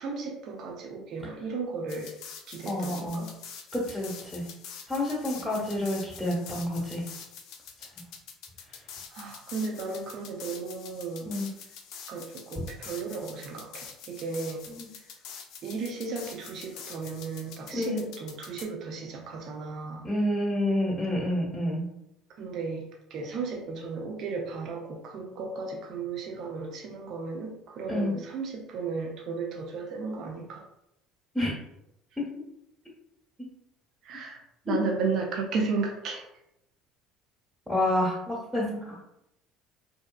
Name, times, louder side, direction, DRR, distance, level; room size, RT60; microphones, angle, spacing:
voice 1, 0.0-2.1 2.5-3.3 9.1-11.3 12.1-14.6 15.0-15.1 15.6-20.1 22.4-22.8 23.1-30.6 34.0-36.3, right 4 dB, 55° right, 1 dB, 0.4 m, -34 dB
sound 1, 1.9-18.6, left 7 dB, 65° left, 0.4 m, -45 dB
voice 2, 2.6-3.2 3.7-4.5 4.9-7.0 7.8-7.9 11.2-11.5 14.7-14.9 17.7-18.1 20.0-21.9 27.9-28.2 31.3-31.5 32.2-32.3 34.7-34.8 37.7-38.9, left 1 dB, 5° right, -6 dB, 1.0 m, -29 dB
2.6 x 2.2 x 2.2 m, 0.83 s
hypercardioid pair, 70°, 0 cm